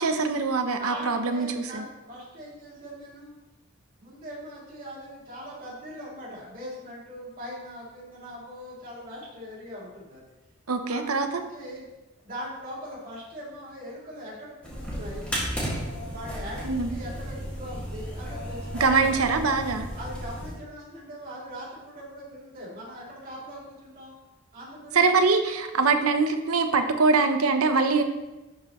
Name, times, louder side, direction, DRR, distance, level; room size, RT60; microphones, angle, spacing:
voice 1, 0.0-1.8 10.7-11.3 16.6-16.9 18.8-19.9 24.9-28.0, right 4 dB, 90° right, 7 dB, 0.8 m, -23 dB
voice 2, 0.8-3.3 4.0-10.2 10.8-11.0 11.3-11.8 12.2-15.3 16.1-19.2 19.9-24.1 24.5-25.0, equal, 40° right, -6 dB, 2.9 m, -41 dB
sound 1, 14.6-20.5, equal, 5° left, 1.9 m, -34 dB
11.0 x 5.7 x 3.1 m, 1.1 s
head